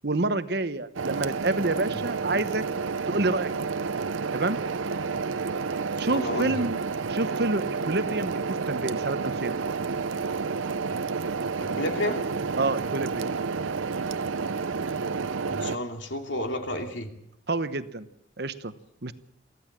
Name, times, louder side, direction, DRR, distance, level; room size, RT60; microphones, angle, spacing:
voice 1, 0.0-2.6 3.1-3.7 4.3-4.6 6.0-6.8 7.1-9.6 12.6-13.3 17.5-18.1 18.4-18.7 19.0-19.1, right 2 dB, 55° right, 12 dB, 1.0 m, -28 dB
sound 1, 1.0-15.8, right 5 dB, 85° right, 0.7 m, -30 dB
voice 2, 5.8-6.6 11.6-12.2 15.4-17.1, left 1 dB, 70° left, 4 dB, 2.8 m, -31 dB
24.0 x 15.0 x 7.4 m, 0.78 s
head